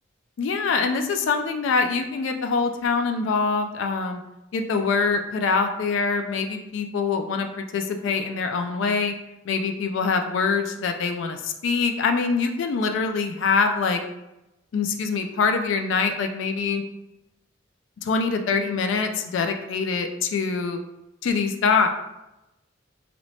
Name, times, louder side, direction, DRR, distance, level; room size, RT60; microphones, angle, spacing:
voice 1, 0.4-4.2 4.5-9.1 9.5-14.0 14.7-16.8 18.0-20.8 21.2-21.9, left 4 dB, 75° left, 5 dB, 0.3 m, -24 dB
3.2 x 2.9 x 2.6 m, 0.93 s
head